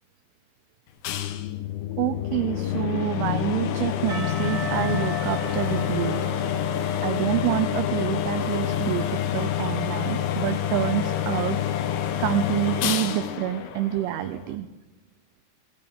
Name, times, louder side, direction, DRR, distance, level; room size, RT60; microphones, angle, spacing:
sound 1, 1.0-14.5, left 10 dB, 85° left, 3.5 m, -27 dB
voice 1, 2.0-6.2 7.0-9.1 9.3-11.6 12.2-14.7, right 14 dB, 85° right, 9 dB, 2.9 m, -27 dB
Percussion / Church bell, 4.1-8.9, right 5 dB, 60° right, 3.9 m, -40 dB
17.5 x 15.5 x 3.6 m, 1.1 s
omnidirectional pair, 5.9 m